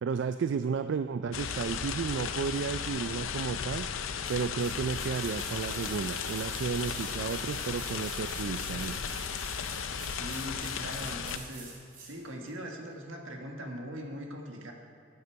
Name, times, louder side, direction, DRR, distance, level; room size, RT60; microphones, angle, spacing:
voice 1, 0.0-3.9 4.3-9.0, right 6 dB, 60° right, 10 dB, 0.3 m, -33 dB
sound 1, 1.3-11.4, left 7 dB, 90° left, 0.6 m, -35 dB
sound 2, 4.2-12.2 12.5-12.6, right 3 dB, 45° right, 3.1 m, -46 dB
voice 2, 10.1-11.7 12.0-14.7, equal, 80° right, 2 dB, 1.6 m, -41 dB
12.0 x 9.6 x 4.6 m, 2.6 s
head